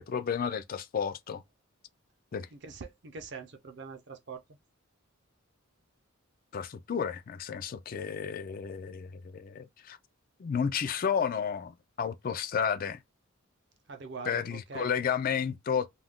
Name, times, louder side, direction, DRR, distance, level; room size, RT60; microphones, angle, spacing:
voice 1, 0.0-1.4 2.3-2.5 6.5-10.0 10.4-13.0 14.3-15.9, left 7 dB, 40° left, 0.3 m, -32 dB
voice 2, 2.5-4.4 13.9-14.9, right 5 dB, 55° right, 0.6 m, -43 dB
2.4 x 2.2 x 3.5 m
head